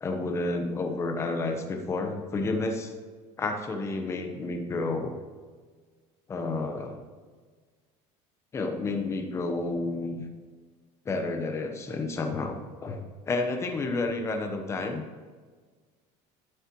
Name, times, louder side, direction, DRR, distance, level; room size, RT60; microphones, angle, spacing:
voice 1, 0.0-2.9 3.4-5.1 6.3-7.0 8.5-10.3 11.0-15.0, left 3 dB, 20° left, 4 dB, 1.0 m, -30 dB
11.0 x 6.6 x 3.0 m, 1.5 s
cardioid pair, 155°, 14 cm